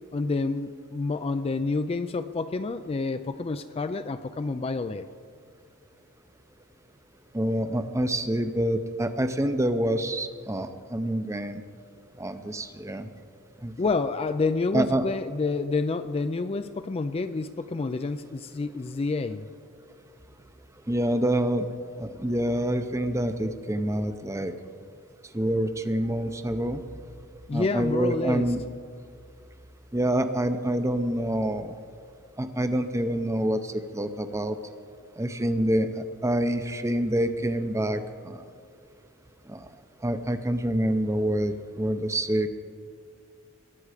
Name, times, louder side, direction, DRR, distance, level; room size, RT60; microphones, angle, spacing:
voice 1, 0.1-5.1 13.8-19.5 27.5-28.5, left 3 dB, 25° left, 10 dB, 0.3 m, -28 dB
voice 2, 7.3-11.6 12.2-13.1 13.6-13.7 14.7-15.0 20.9-21.7 22.0-24.5 25.3-26.8 27.5-28.6 29.9-31.7 32.4-34.6 35.2-35.9 36.2-38.4 39.5-39.6 40.0-42.5, right 1 dB, 15° right, 10 dB, 0.6 m, -27 dB
21.5 x 8.6 x 5.0 m, 2.2 s
head